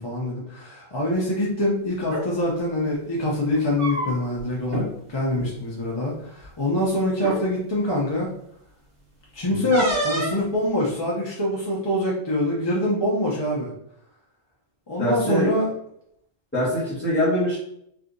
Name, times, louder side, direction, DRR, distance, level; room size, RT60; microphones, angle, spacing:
voice 1, 0.0-8.3 9.3-13.7 14.9-15.7, left 1 dB, 30° left, -5 dB, 0.5 m, -24 dB
sound 1, 2.0-2.3 3.5-4.4 4.7-4.9 5.2-5.5 6.4-6.5 7.2-7.4 9.7-10.4, right 1 dB, 60° right, 1.5 m, -27 dB
voice 2, 15.0-15.5 16.5-17.6, equal, 10° left, -12 dB, 1.2 m, -23 dB
3.3 x 2.8 x 2.5 m, 0.73 s
omnidirectional pair, 1.0 m